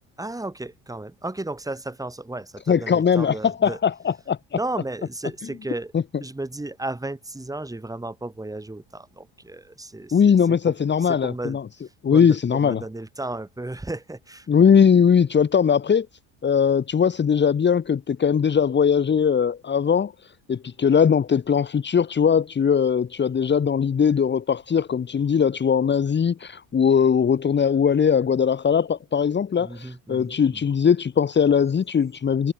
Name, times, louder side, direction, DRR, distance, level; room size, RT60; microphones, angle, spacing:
voice 1, 0.2-3.8 4.5-5.9 6.2-10.7 11.0-14.7 29.6-30.7, right 2 dB, 10° right, 5.7 m, -34 dB
voice 2, 2.7-3.9 4.3-4.4 10.1-11.6 12.0-12.8 14.5-16.1 16.4-20.1 20.5-32.5, left 7 dB, 25° left, 1.7 m, -20 dB
cardioid pair, 130°, 40 cm